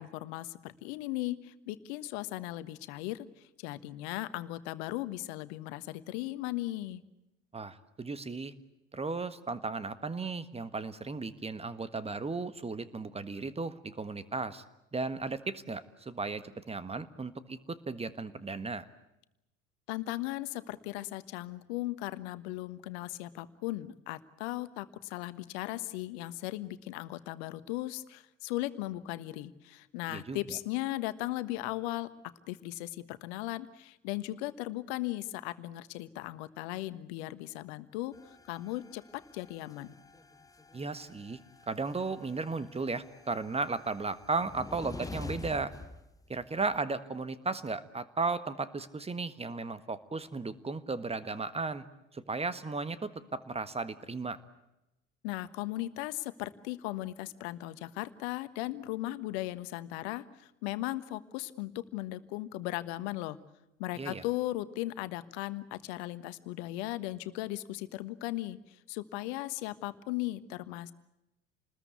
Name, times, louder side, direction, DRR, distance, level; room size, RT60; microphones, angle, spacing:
voice 1, 0.0-7.0 19.9-32.1 32.5-40.0 55.2-63.4 63.8-70.9, left 17 dB, 60° left, 14 dB, 1.4 m, -37 dB
voice 2, 7.5-8.5 8.9-14.6 14.9-18.8 30.1-30.4 40.7-41.4 41.7-45.7 46.3-51.8 52.1-54.4 64.0-64.2, right 3 dB, 15° right, 14 dB, 1.5 m, -35 dB
sound 1, 38.1-46.8, left 3 dB, 10° left, 1.3 m, -48 dB
28.5 x 20.5 x 8.3 m, 0.92 s
figure-of-eight pair, 65°, 37 cm